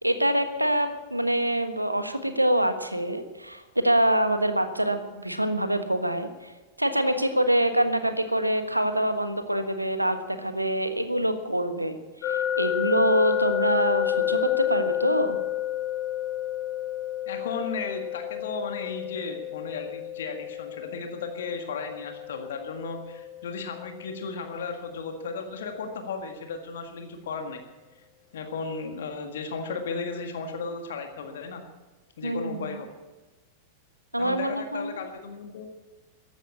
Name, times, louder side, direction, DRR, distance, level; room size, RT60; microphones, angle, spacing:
voice 1, 0.0-6.5 6.8-12.0 12.2-15.4 32.2-32.8 34.1-35.0, right 1 dB, 85° right, 9 dB, 1.4 m, -25 dB
sound 1, 12.2-25.1, left 11 dB, 40° left, 4.9 m, -31 dB
voice 2, 17.3-27.7 28.3-31.6 32.2-32.9 34.2-35.7, left 4 dB, 60° left, 5 dB, 1.7 m, -35 dB
14.5 x 11.5 x 8.4 m, 1.2 s
figure-of-eight pair, 90°, 0 cm